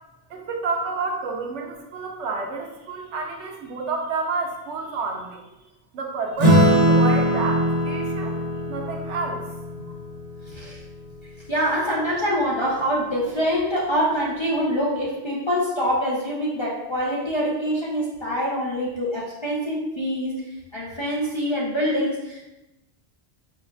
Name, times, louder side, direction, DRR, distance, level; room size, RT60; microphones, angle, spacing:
voice 1, 0.3-5.5 5.9-8.4 8.7-9.4, right 4 dB, 85° right, 1 dB, 0.9 m, -29 dB
Acoustic guitar / Strum, 6.4-11.2, equal, 40° right, 0.8 m, -21 dB
voice 2, 10.5-10.8 11.5-20.4 20.7-22.5, equal, 40° left, -7 dB, 0.4 m, -25 dB
4.9 x 2.3 x 2.2 m, 0.96 s
omnidirectional pair, 1.2 m